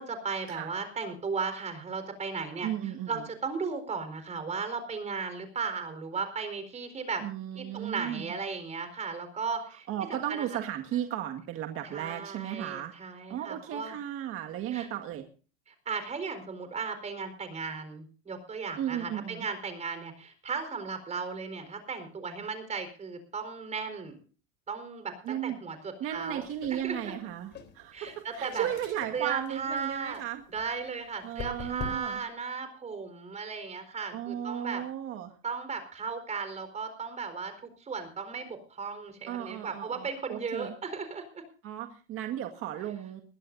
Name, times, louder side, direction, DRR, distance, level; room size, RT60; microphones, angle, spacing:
voice 1, 0.0-7.2 7.5-9.9 10.3-10.5 11.8-13.9 14.7-14.9 15.7-24.2 24.7-26.4 26.7-27.1 27.9-28.7 29.1-30.2 30.5-34.8 35.4-41.4, right 5 dB, 20° right, 9 dB, 4.4 m, -36 dB
voice 2, 2.6-3.3 7.2-8.3 9.9-13.0 13.3-15.3 18.8-19.5 25.2-25.6 26.0-30.4 31.2-32.2 34.1-35.3 39.3-40.7 41.6-43.2, right 11 dB, 45° right, 4 dB, 1.8 m, -35 dB
sound 1, 26.1-32.3, left 6 dB, 35° left, 3.6 m, -45 dB
22.0 x 15.5 x 2.6 m, 0.37 s
supercardioid pair, 135°, 31 cm